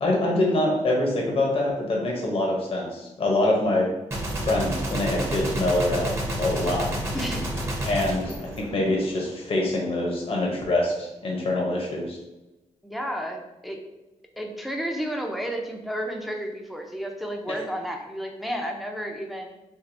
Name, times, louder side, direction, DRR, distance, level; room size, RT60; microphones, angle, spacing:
voice 1, 0.0-3.9 4.5-6.1 6.4-6.9 7.8-12.2, left 1 dB, 50° left, -1 dB, 0.8 m, -25 dB
Gunshot gunfire, 4.1-9.3, right 1 dB, 20° right, 0.9 m, -30 dB
voice 2, 7.1-7.6 12.8-13.8 14.4-19.5, equal, ahead, 2 dB, 0.6 m, -32 dB
4.6 x 2.5 x 2.6 m, 1.0 s
cardioid pair, 100°, 12 cm